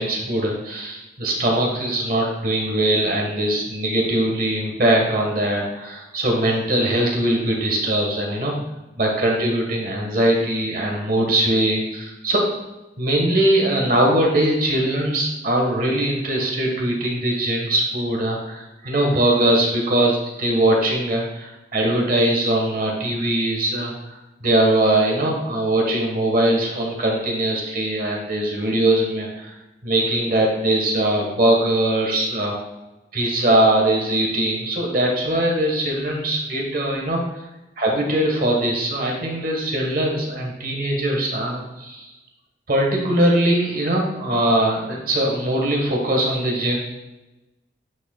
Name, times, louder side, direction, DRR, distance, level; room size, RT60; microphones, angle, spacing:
voice 1, 0.0-8.5 9.0-12.4 13.0-29.5 29.8-32.6 33.1-37.2 37.8-42.1 42.7-46.8, right 1 dB, 50° right, 0 dB, 1.3 m, -21 dB
9.2 x 6.1 x 2.2 m, 1.0 s
head